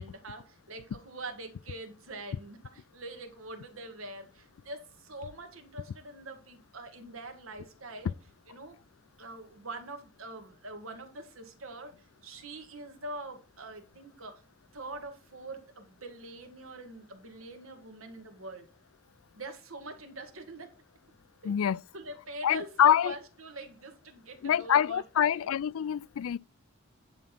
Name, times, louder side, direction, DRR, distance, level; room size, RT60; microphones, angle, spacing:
voice 1, 0.0-8.1 8.5-8.8 9.2-11.9 12.2-14.4 14.7-18.7 19.4-20.8 21.4-21.5 21.9-25.5, right 2 dB, 85° right, 1.9 m, -44 dB
voice 2, 21.5-21.8 22.4-23.1 24.4-26.4, left 9 dB, 85° left, 0.4 m, -25 dB
10.5 x 3.7 x 5.9 m
head